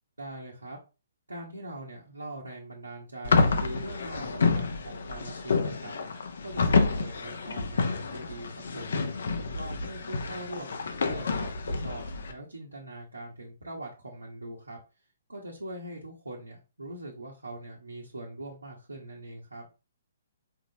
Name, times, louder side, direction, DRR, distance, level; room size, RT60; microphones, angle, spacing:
voice 1, 0.2-0.8 1.3-8.9 9.5-14.8 15.3-19.7, right 1 dB, 80° right, -3 dB, 1.2 m, -42 dB
sound 1, 3.2-12.3, left 4 dB, 60° left, 0.8 m, -28 dB
4.8 x 3.9 x 2.8 m, 0.31 s
figure-of-eight pair, 125°, 0 cm